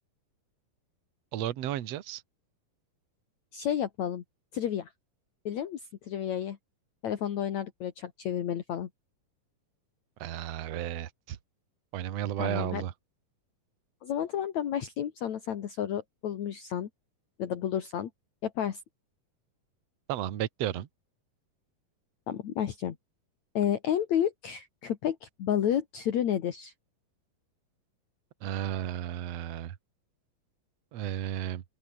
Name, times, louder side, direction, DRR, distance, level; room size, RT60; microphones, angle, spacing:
voice 1, 1.3-2.2 10.2-11.4 11.9-12.9 20.1-20.9 28.4-29.8 30.9-31.6, right 12 dB, 55° right, 2.2 m, -33 dB
voice 2, 3.5-4.2 4.5-4.9 5.4-6.6 7.0-8.9 12.4-12.8 14.0-16.9 17.4-18.1 18.4-18.8 22.3-23.0 23.5-26.7, left 9 dB, 60° left, 2.8 m, -31 dB
open air
omnidirectional pair, 4.0 m